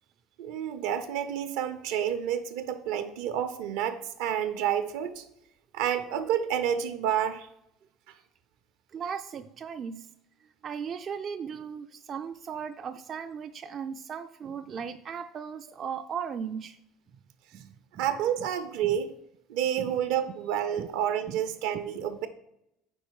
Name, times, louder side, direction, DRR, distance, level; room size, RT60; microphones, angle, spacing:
voice 1, 0.4-5.2 5.7-7.5 18.0-19.1 19.5-22.3, right 9 dB, 80° right, 9 dB, 0.6 m, -29 dB
voice 2, 8.9-10.1 10.6-16.8 17.5-18.1 18.4-18.5 18.9-19.0 19.8-20.0 20.8-20.9 21.3-21.4, right 7 dB, 40° right, 6 dB, 0.3 m, -37 dB
5.4 x 4.1 x 4.6 m, 0.82 s
supercardioid pair, 90°, 0 cm